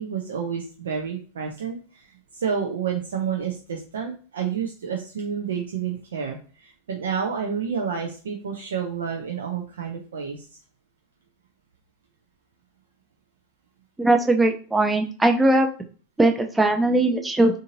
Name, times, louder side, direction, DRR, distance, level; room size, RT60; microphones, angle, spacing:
voice 1, 0.0-2.1 2.3-10.5, right 7 dB, 65° right, 1 dB, 0.5 m, -29 dB
voice 2, 14.0-15.7 16.2-17.6, right 2 dB, 10° right, 4 dB, 0.6 m, -20 dB
3.7 x 2.6 x 2.7 m, 0.40 s
figure-of-eight pair, 90°, 0 cm